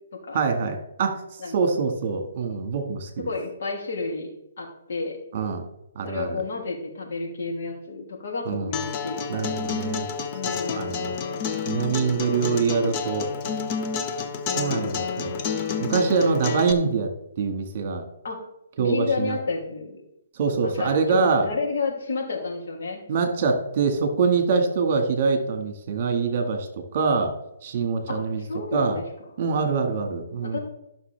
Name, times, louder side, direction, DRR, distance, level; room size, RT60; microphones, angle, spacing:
voice 1, 0.3-1.2 1.5-3.3 5.3-5.7 5.9-6.4 8.5-8.7 9.3-10.1 10.5-11.2 11.7-13.3 14.5-15.3 15.8-17.1 17.4-18.0 18.8-19.4 20.4-21.5 23.1-26.7 26.9-27.3 27.6-28.4 28.7-29.0 29.4-30.6, right 5 dB, 45° right, 6 dB, 1.8 m, -24 dB
voice 2, 3.2-4.3 4.6-5.2 6.0-9.5 10.3-10.9 18.2-18.4 18.8-20.0 20.6-23.0 28.1-28.2 28.5-29.0 30.4-30.6, left 4 dB, 65° left, -1 dB, 2.9 m, -31 dB
Acoustic guitar, 8.7-16.7, left 6 dB, 30° left, 0.8 m, -29 dB
13.5 x 6.2 x 3.4 m, 0.83 s
hypercardioid pair, 150°, 0 cm